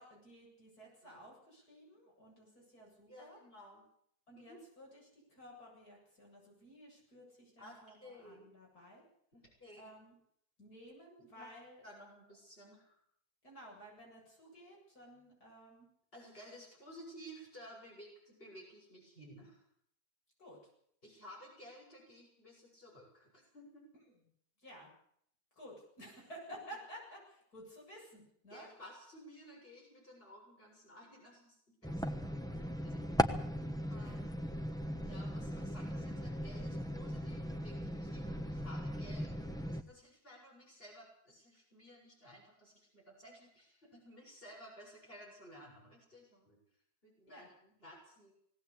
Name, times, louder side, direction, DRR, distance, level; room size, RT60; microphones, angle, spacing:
voice 1, 0.0-3.4 4.3-9.0 9.8-10.1 10.6-11.8 13.4-15.9 20.4-20.6 24.6-24.9 25.6-28.7 34.0-34.2 47.3-47.5, equal, 75° left, -2 dB, 8.6 m, -54 dB
voice 2, 3.1-3.9 4.3-4.6 7.6-8.5 9.3-9.8 11.3-11.5 11.8-13.0 16.1-19.6 21.0-23.8 28.5-31.6 31.9-33.3 33.9-34.3 35.0-46.6 47.0-48.3, equal, 35° left, -2 dB, 7.7 m, -55 dB
sound 1, 31.8-39.8, equal, 5° left, 0.9 m, -38 dB
19.5 x 17.5 x 8.5 m, 0.69 s
omnidirectional pair, 1.7 m